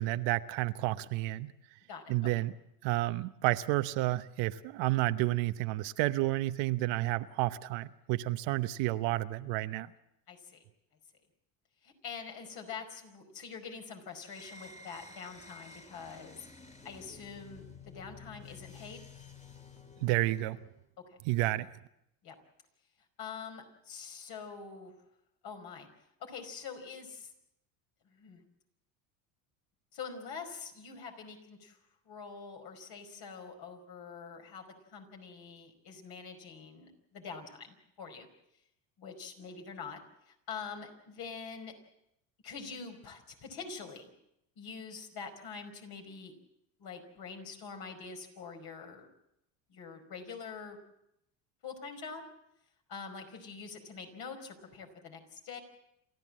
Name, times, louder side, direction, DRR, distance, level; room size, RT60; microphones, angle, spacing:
voice 1, 0.0-1.5 2.1-2.5 2.8-9.9 20.0-20.6 21.2-21.7, right 17 dB, 70° right, 12 dB, 1.0 m, -30 dB
voice 2, 1.9-2.3 10.3-10.6 11.8-16.5 16.8-19.0 22.2-22.4 23.2-24.9 25.4-25.9 26.2-27.3 28.1-28.4 29.9-31.8 32.1-38.3 39.0-40.0 40.3-41.7 42.4-44.1 44.6-46.3 46.8-49.1 49.7-50.8 51.6-52.2 52.9-55.6, left 5 dB, 55° left, 4 dB, 5.2 m, -45 dB
sound 1, 14.1-20.8, left 4 dB, 15° left, 2.3 m, -52 dB
28.5 x 13.5 x 7.5 m, 0.82 s
supercardioid pair, 90°, 46 cm